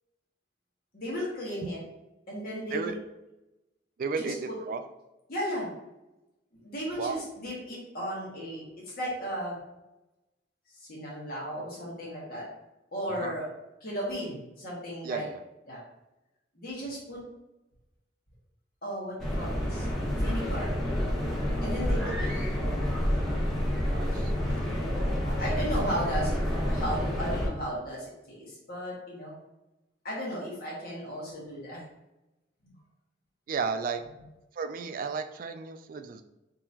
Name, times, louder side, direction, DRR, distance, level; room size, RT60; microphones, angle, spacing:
voice 1, 0.9-1.8 2.3-3.0 4.2-4.5 5.3-5.7 6.6-8.7 9.0-9.5 10.8-12.5 12.9-13.5 13.8-15.3 15.7-15.8 16.5-17.2 18.8-19.9 20.1-20.7 21.6-22.3 22.6-22.8 24.1-24.2 25.1-29.3 30.0-31.8, equal, 55° left, -5 dB, 1.5 m, -35 dB
voice 2, 4.0-4.8 7.0-7.2 13.1-13.3 15.0-15.4 23.9-24.3 33.5-34.0 34.6-36.2, right 5 dB, 50° right, 8 dB, 0.3 m, -33 dB
sound 1, 19.2-27.5, equal, ahead, 1.0 m, -29 dB
3.8 x 2.9 x 2.8 m, 0.97 s
head